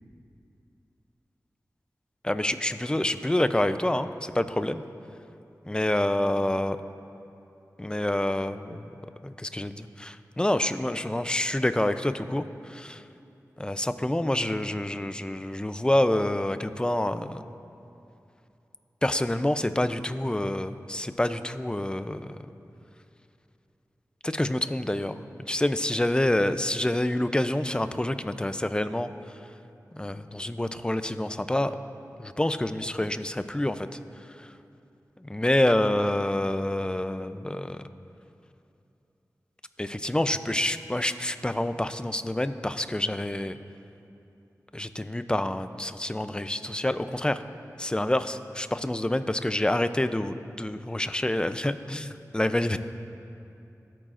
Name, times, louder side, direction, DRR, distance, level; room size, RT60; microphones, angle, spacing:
voice 1, 2.2-4.8 5.7-6.8 7.8-8.9 9.2-12.4 12.7-13.0 13.6-17.4 19.0-22.4 24.2-29.1 29.9-31.7 32.2-33.9 35.2-37.8 39.8-43.5 44.7-47.4 47.8-52.8, left 1 dB, 15° left, 11 dB, 0.5 m, -27 dB
22.5 x 9.0 x 2.5 m, 2.8 s
wide cardioid pair, 45°, 6 cm